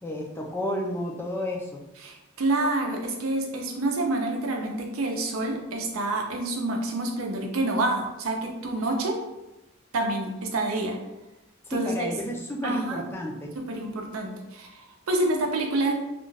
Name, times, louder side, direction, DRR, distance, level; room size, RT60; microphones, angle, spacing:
voice 1, 0.0-1.8 11.7-13.5, equal, 10° left, 0 dB, 0.3 m, -31 dB
voice 2, 2.0-9.2 9.9-11.0 11.7-12.1 12.6-13.0 13.6-15.9, right 2 dB, 80° right, 2 dB, 0.5 m, -28 dB
2.4 x 2.2 x 3.2 m, 0.97 s
head